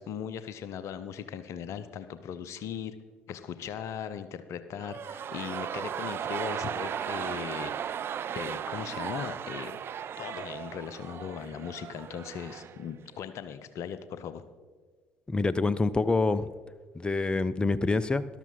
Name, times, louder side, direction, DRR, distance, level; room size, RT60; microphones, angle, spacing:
voice 1, 0.0-3.0 3.3-7.7 8.3-9.8 10.2-14.4, left 8 dB, 55° left, 13 dB, 0.7 m, -38 dB
sound 1, 4.8-12.9 13.1-13.2, right 9 dB, 40° right, 0.4 m, -36 dB
voice 2, 15.3-16.5 16.9-18.3, left 3 dB, 15° left, 16 dB, 0.5 m, -26 dB
13.0 x 12.0 x 4.0 m, 1.4 s
figure-of-eight pair, 50°, 6 cm